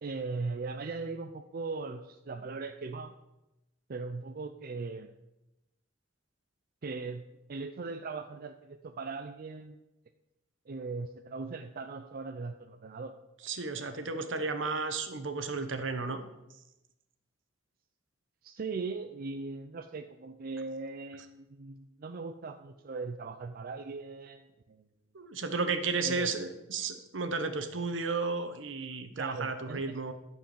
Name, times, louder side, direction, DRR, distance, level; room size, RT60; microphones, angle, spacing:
voice 1, 0.0-3.1 3.9-5.1 6.8-7.2 7.5-9.8 10.7-13.1 18.4-24.9 26.0-26.3 29.2-29.8, right 4 dB, 50° right, 7 dB, 0.5 m, -39 dB
voice 2, 13.4-16.2 25.1-30.1, right 4 dB, 75° right, 8 dB, 1.1 m, -33 dB
12.0 x 4.6 x 7.2 m, 0.95 s
head